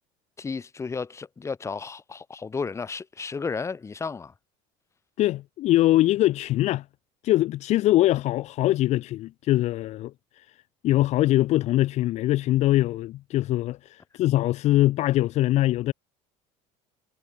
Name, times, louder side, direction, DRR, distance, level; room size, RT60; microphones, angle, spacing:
voice 1, 0.4-4.3, left 5 dB, 20° left, 4.9 m, -33 dB
voice 2, 5.2-6.8 7.2-10.4 10.8-15.9, left 15 dB, 55° left, 1.5 m, -22 dB
cardioid pair, 125°, 14 cm